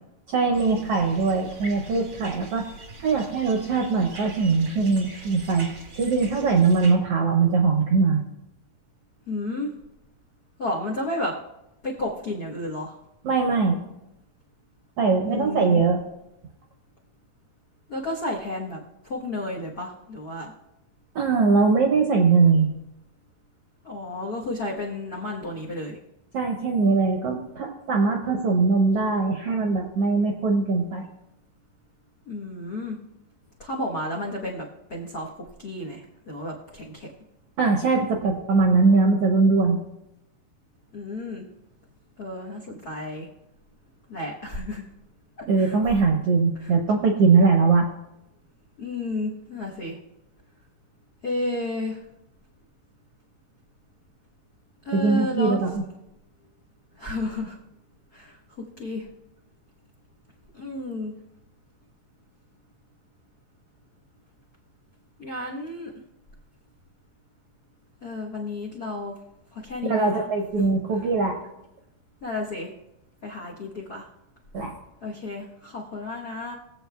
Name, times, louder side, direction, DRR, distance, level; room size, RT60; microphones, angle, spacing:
voice 1, 0.3-2.6 3.0-5.7 6.0-8.2 13.2-13.8 15.0-16.0 21.1-22.7 26.3-31.0 37.6-39.8 45.5-47.9 54.9-55.8 69.9-71.3 74.5-74.7, right 4 dB, 75° right, 1 dB, 1.4 m, -21 dB
sound 1, 0.5-6.9, right 3 dB, 40° right, 0.9 m, -42 dB
voice 2, 9.3-9.7 10.6-11.3 11.8-13.0 15.2-15.8 17.9-20.5 23.8-26.0 32.2-33.0 33.6-34.6 34.9-35.3 35.6-37.1 40.9-41.4 42.2-43.3 44.1-44.8 45.6-45.8 46.6-46.7 48.8-50.0 51.2-52.0 54.8-55.6 57.0-57.6 58.1-58.4 58.8-59.1 60.5-61.1 65.2-65.9 68.0-69.1 69.5-70.2 72.2-72.7 73.2-74.1 75.0-76.5, left 2 dB, 75° left, -3 dB, 0.8 m, -32 dB
21.5 x 7.8 x 2.3 m, 0.87 s
omnidirectional pair, 3.8 m